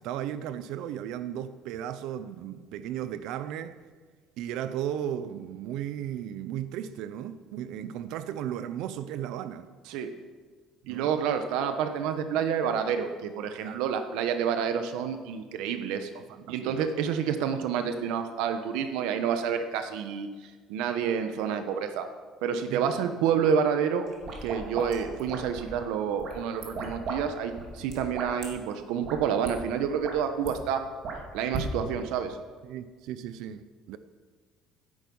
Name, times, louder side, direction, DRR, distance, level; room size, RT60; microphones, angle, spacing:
voice 1, 0.0-3.8 4.4-9.7 10.8-11.1 13.6-13.8 16.1-16.9 22.7-22.8 32.6-34.0, right 10 dB, 70° right, 0.6 m, -35 dB
voice 2, 10.9-16.1 16.5-20.3 20.7-22.1 22.4-24.1 24.4-30.8 31.3-32.4, right 7 dB, 90° right, 1.1 m, -28 dB
sound 1, 24.1-25.8 26.2-27.2 27.4-28.5 29.0-29.1 29.4-29.5 29.9-30.5 31.0-31.7, right 4 dB, 45° right, 2.6 m, -36 dB
15.5 x 10.5 x 5.5 m
cardioid pair, 175°, 0 cm